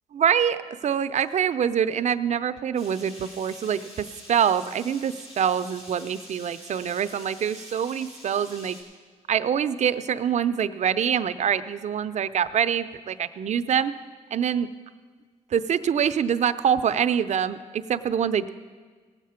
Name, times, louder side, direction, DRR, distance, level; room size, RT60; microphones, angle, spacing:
voice 1, 0.1-8.8 9.3-13.9 14.3-14.7 15.5-18.5, right 8 dB, 55° right, 12 dB, 0.5 m, -25 dB
sound 1, 2.8-8.8, left 1 dB, 45° left, 3.8 m, -46 dB
18.0 x 7.5 x 5.7 m, 1.5 s
cardioid pair, 80°, 14 cm